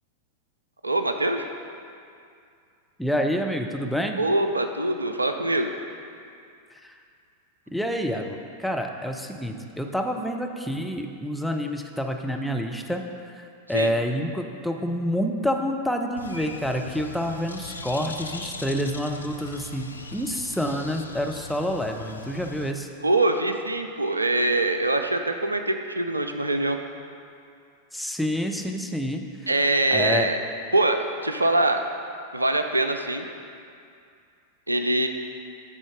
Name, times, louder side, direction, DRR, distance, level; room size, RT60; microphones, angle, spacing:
voice 1, 0.8-1.5 4.2-5.7 13.7-13.9 23.0-26.8 29.5-30.4 30.7-31.8 32.3-33.3 34.7-35.1, right 2 dB, 80° right, 6 dB, 0.4 m, -23 dB
voice 2, 3.0-4.2 6.8-6.9 7.7-22.9 27.9-29.2 29.6-30.3, equal, ahead, 2 dB, 0.6 m, -28 dB
Bird, 16.2-22.7, left 3 dB, 80° left, 0.4 m, -39 dB
9.8 x 4.0 x 5.0 m, 2.4 s
figure-of-eight pair, 90°, 0 cm